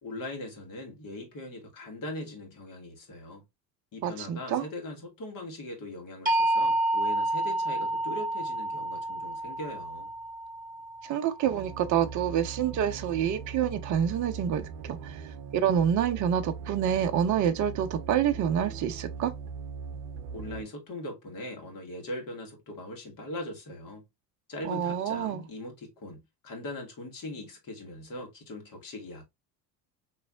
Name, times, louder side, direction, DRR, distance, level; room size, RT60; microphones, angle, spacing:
voice 1, 0.0-3.4 3.9-10.1 20.3-24.1 24.5-29.3, left 1 dB, 40° left, 1.9 m, -40 dB
voice 2, 4.0-4.6 11.0-19.3 24.6-25.4, right 9 dB, 40° right, 0.6 m, -27 dB
sound 1, 6.3-12.2, right 1 dB, 15° right, 1.5 m, -30 dB
sound 2, 11.4-20.6, right 5 dB, 80° right, 0.7 m, -40 dB
4.7 x 3.0 x 2.3 m
hypercardioid pair, 65°, 49 cm